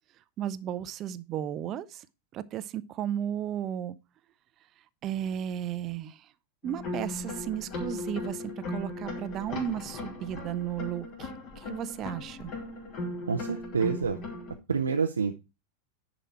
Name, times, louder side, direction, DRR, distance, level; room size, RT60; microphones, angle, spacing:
voice 1, 0.4-2.1 2.3-4.0 5.0-6.3 6.6-12.5, right 10 dB, 35° right, 0.6 m, -34 dB
sound 1, 6.6-14.5, left 2 dB, 40° left, 2.8 m, -38 dB
voice 2, 13.3-14.2 14.7-15.3, right 5 dB, 75° right, 0.6 m, -27 dB
10.0 x 5.1 x 4.4 m
figure-of-eight pair, 90°, 0 cm